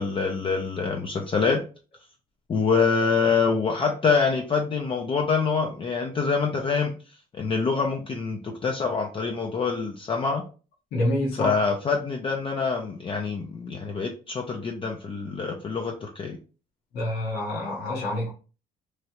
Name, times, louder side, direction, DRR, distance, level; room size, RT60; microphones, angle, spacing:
voice 1, 0.0-1.6 2.5-6.9 7.3-10.4 11.4-16.4, left 5 dB, 30° left, 2 dB, 0.4 m, -25 dB
voice 2, 10.9-11.6 16.9-18.3, left 1 dB, 65° left, -2 dB, 1.1 m, -27 dB
3.1 x 2.3 x 2.8 m, 0.35 s
cardioid pair, 110°, 17 cm